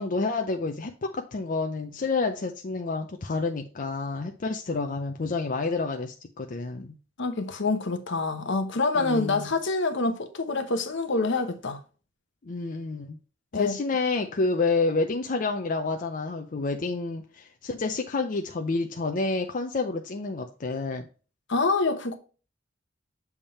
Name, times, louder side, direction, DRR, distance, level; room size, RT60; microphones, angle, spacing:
voice 1, 0.0-6.9 8.9-9.5 12.4-13.2 13.5-21.1, left 3 dB, 40° left, 0.5 m, -29 dB
voice 2, 7.2-11.8 13.5-13.8 21.5-22.2, left 3 dB, 65° left, 0.9 m, -26 dB
7.2 x 3.5 x 4.2 m
head